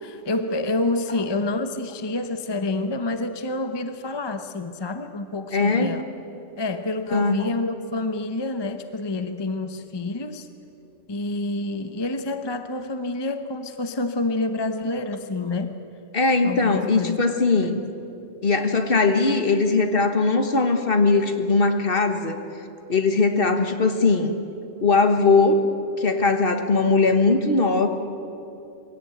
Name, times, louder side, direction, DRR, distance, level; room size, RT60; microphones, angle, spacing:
voice 1, 0.0-6.0 6.6-10.5 11.1-15.7 16.4-17.2 17.6-17.7, left 2 dB, 25° left, 8 dB, 0.8 m, -28 dB
voice 2, 5.5-6.0 7.1-7.4 16.1-17.8 18.4-22.4 22.9-24.4 24.8-25.6 26.0-27.9, left 3 dB, 50° left, 6 dB, 1.6 m, -20 dB
23.0 x 17.0 x 9.2 m, 2.9 s
omnidirectional pair, 1.3 m